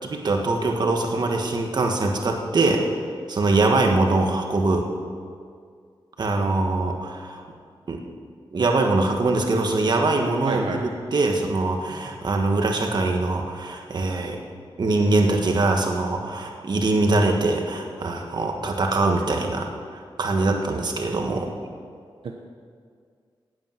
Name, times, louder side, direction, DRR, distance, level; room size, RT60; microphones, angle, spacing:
voice 1, 0.0-2.8 3.3-4.9 6.2-7.4 7.9-8.0 8.5-14.4 14.8-19.7 19.9-21.5, right 2 dB, 50° right, 2 dB, 1.5 m, -23 dB
voice 2, 10.4-10.8 20.4-20.8 22.2-22.3, right 4 dB, 75° right, 1 dB, 0.9 m, -31 dB
17.0 x 8.9 x 5.9 m, 2.1 s
wide cardioid pair, 170°, 9 cm